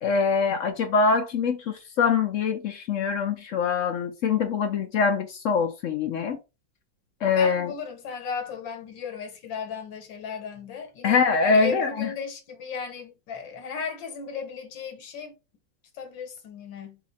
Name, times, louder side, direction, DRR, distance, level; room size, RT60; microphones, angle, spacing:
voice 1, 0.0-6.4 7.2-7.7 11.0-12.1, left 5 dB, 70° left, 0.7 m, -24 dB
voice 2, 7.4-15.4 15.9-17.0, left 6 dB, 85° left, 1.8 m, -35 dB
4.1 x 2.4 x 4.1 m
omnidirectional pair, 2.0 m